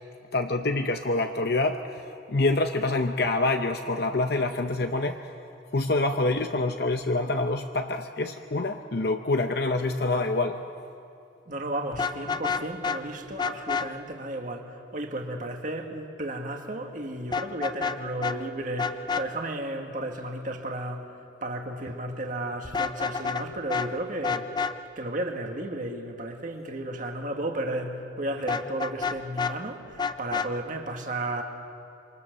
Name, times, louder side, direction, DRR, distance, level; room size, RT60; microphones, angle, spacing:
voice 1, 0.3-5.3 5.7-10.6, left 2 dB, 55° left, 6 dB, 0.8 m, -26 dB
voice 2, 11.5-21.1 21.4-24.6 25.0-31.4, right 1 dB, 40° right, 3 dB, 1.8 m, -33 dB
Vehicle horn car horn honking, 11.9-13.0 13.4-13.9 17.3-18.0 18.2-18.4 18.8-19.2 22.6-23.4 23.7-23.9 24.2-24.7 28.5-29.5 30.0-30.5, left 5 dB, 20° left, 0.6 m, -28 dB
27.0 x 24.5 x 6.7 m, 2.7 s
head